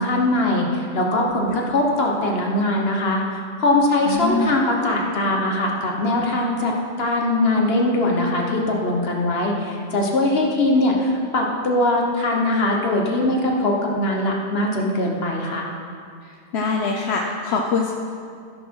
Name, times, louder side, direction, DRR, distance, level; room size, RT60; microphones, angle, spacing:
voice 1, 0.0-15.7, left 1 dB, 70° left, 0 dB, 1.5 m, -21 dB
voice 2, 4.0-4.5 16.5-17.9, left 4 dB, 85° left, 1 dB, 1.0 m, -23 dB
15.5 x 6.3 x 4.7 m, 2.3 s
omnidirectional pair, 1.1 m